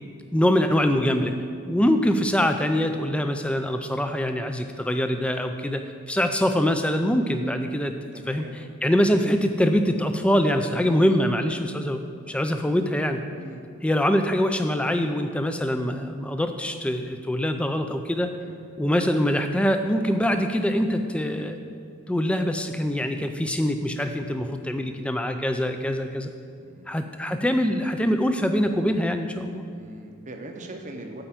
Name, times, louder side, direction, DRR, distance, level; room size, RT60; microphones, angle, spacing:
voice 1, 0.3-1.3 1.7-5.8 6.1-7.9 8.3-8.4 8.8-13.2 13.8-18.3 18.8-21.6 22.1-26.3 26.9-29.7, equal, 5° left, 7 dB, 0.3 m, -24 dB
voice 2, 8.1-8.6 12.6-12.8 13.4-13.6 18.4-18.6 23.1-23.3 26.6-27.0 29.7-31.2, right 2 dB, 35° right, 3 dB, 0.6 m, -41 dB
8.9 x 4.4 x 7.3 m, 2.3 s
head